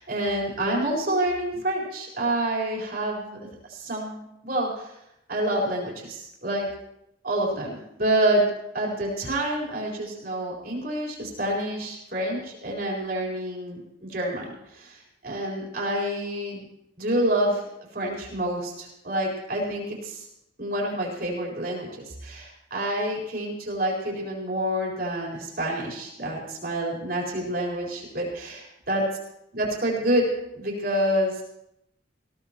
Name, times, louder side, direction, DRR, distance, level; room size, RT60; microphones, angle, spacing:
voice 1, 0.0-4.9 5.3-6.7 7.2-8.4 8.7-16.7 17.0-17.6 17.9-20.3 20.6-29.0 29.5-30.3 30.5-31.4, right 1 dB, 50° right, -2 dB, 4.3 m, -28 dB
19.5 x 16.5 x 3.0 m, 0.83 s
head